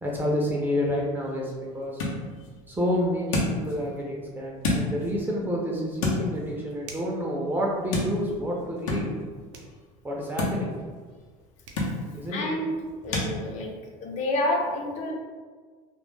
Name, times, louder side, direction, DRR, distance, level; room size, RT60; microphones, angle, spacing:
voice 1, 0.0-2.0 2.7-9.1 10.0-10.7 12.1-12.5, equal, 15° right, -3 dB, 0.4 m, -29 dB
sound 1, 0.8-13.3, left 2 dB, 85° left, 0.6 m, -33 dB
sound 2, 6.8-7.2 9.5-9.8 11.3-11.4 11.6-11.9, right 4 dB, 90° right, 0.5 m, -45 dB
voice 2, 12.3-12.7 13.0-13.7 14.0-15.1, left 1 dB, 45° left, 1 dB, 0.5 m, -28 dB
2.2 x 2.1 x 3.1 m, 1.5 s
supercardioid pair, 115°, 16 cm